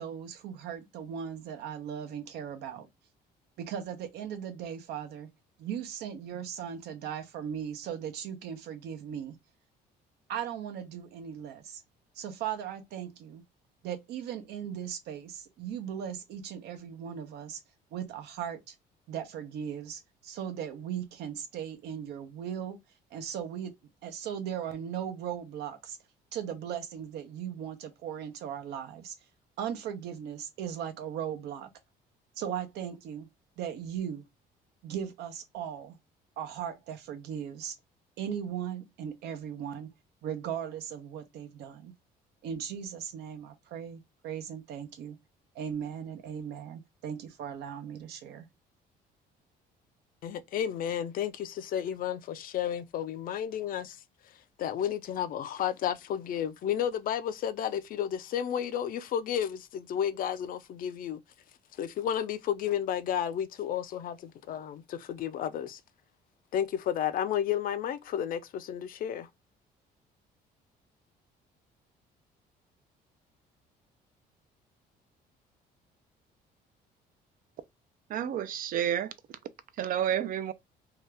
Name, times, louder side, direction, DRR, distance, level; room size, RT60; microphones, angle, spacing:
voice 1, 0.0-2.9 3.6-5.3 5.6-9.4 10.3-11.8 12.1-13.4 13.8-17.6 17.9-18.7 19.1-22.8 23.1-23.7 24.0-26.0 26.3-29.1 29.6-31.7 32.4-33.3 33.6-34.2 34.8-36.0 36.4-37.7 38.2-39.9 40.2-41.9 42.4-45.2 45.5-48.5, right 8 dB, 75° right, 0.8 m, -38 dB
voice 2, 50.2-54.0 54.6-61.2 61.8-65.8 66.5-69.3, left 9 dB, 55° left, 0.5 m, -32 dB
voice 3, 78.1-79.1 79.8-80.5, right 10 dB, 55° right, 0.4 m, -30 dB
2.8 x 2.3 x 3.3 m
cardioid pair, 110°, 17 cm